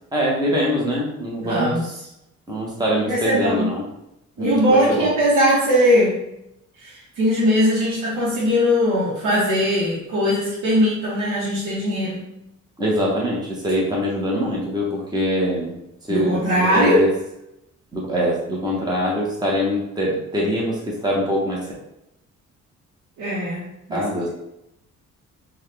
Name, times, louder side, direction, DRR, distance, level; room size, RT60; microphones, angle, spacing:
voice 1, 0.1-1.8 2.5-3.9 4.4-5.1 12.8-15.7 16.1-17.1 17.9-21.6 23.9-24.3, equal, 15° right, -4 dB, 1.1 m, -23 dB
voice 2, 1.4-1.8 3.1-3.7 4.4-6.2 6.8-12.3 16.1-17.0 23.2-23.6 23.9-24.3, equal, 90° right, -8 dB, 1.0 m, -20 dB
4.0 x 2.5 x 3.3 m, 0.84 s
cardioid pair, 90°, 30 cm